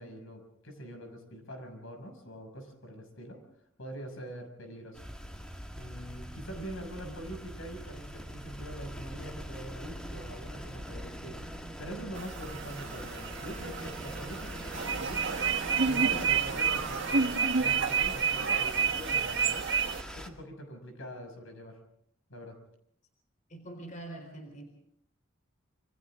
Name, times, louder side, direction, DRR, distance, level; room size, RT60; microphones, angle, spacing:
voice 1, 0.0-3.4 3.8-5.0 5.7-15.3 15.8-19.7 20.1-21.8 22.3-22.6, equal, 70° left, 5 dB, 6.4 m, -44 dB
sound 1, 4.9-20.3, equal, 5° left, 2.0 m, -43 dB
sound 2, 12.2-20.0, right 6 dB, 60° right, 1.5 m, -29 dB
voice 2, 23.5-24.6, right 2 dB, 40° left, 4 dB, 3.9 m, -44 dB
27.5 x 26.0 x 3.8 m, 0.68 s
head